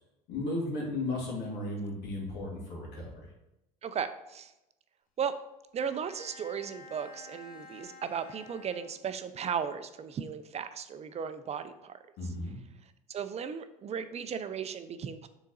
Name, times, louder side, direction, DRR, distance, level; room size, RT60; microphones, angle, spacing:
voice 1, 0.3-3.3 12.2-12.6, left 2 dB, 65° left, -2 dB, 2.1 m, -35 dB
voice 2, 3.8-4.5 5.2-5.4 5.7-12.0 13.1-15.3, right 7 dB, 35° right, 11 dB, 0.5 m, -36 dB
Bowed string instrument, 5.8-9.5, left 3 dB, 50° left, 1.0 m, -51 dB
6.3 x 4.0 x 4.0 m, 0.92 s
supercardioid pair, 85°, 18 cm